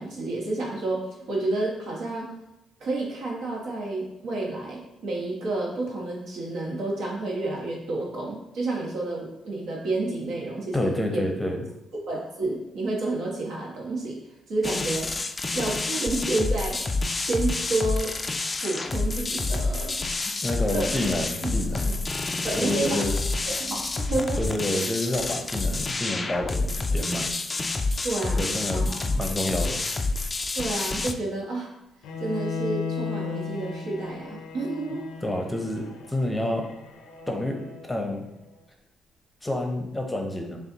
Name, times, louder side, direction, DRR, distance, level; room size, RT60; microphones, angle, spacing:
voice 1, 0.0-2.3 2.8-11.3 12.1-14.2 14.5-15.1 15.5-18.1 18.6-20.0 20.7-21.2 21.7-21.9 22.4-23.0 23.5-24.4 28.0-29.1 30.5-31.7 32.2-35.1, right 2 dB, 80° right, -3 dB, 1.3 m, -30 dB
voice 2, 10.7-11.6 20.4-21.9 22.5-23.1 24.4-27.3 28.3-29.8 35.2-36.7 37.3-38.3 39.4-40.6, left 1 dB, 10° left, 2 dB, 0.7 m, -29 dB
sound 1, 14.6-31.1, left 3 dB, 25° left, 0.3 m, -28 dB
Bowed string instrument, 32.0-38.1, left 5 dB, 85° left, 0.5 m, -36 dB
6.6 x 2.4 x 2.8 m, 0.89 s
cardioid pair, 90°, 0 cm